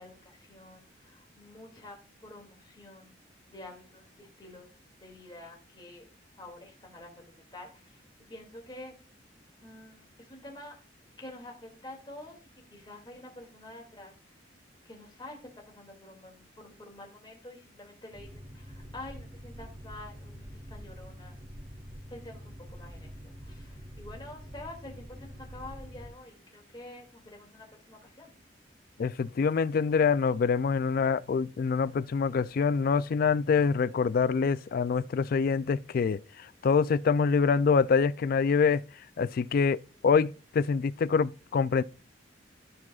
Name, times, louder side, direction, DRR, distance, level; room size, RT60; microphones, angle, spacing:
voice 1, 0.0-2.0 2.2-3.1 3.5-4.7 5.0-6.1 6.4-8.0 8.3-8.9 9.6-10.8 11.2-12.4 12.7-14.1 14.8-21.3 22.1-28.3, left 1 dB, 25° left, 2.4 m, -48 dB
Boat Water vehicle, 18.1-26.1, equal, 30° right, 1.4 m, -46 dB
voice 2, 29.0-38.8 39.2-41.8, left 5 dB, 50° left, 0.3 m, -25 dB
14.5 x 4.9 x 2.4 m
head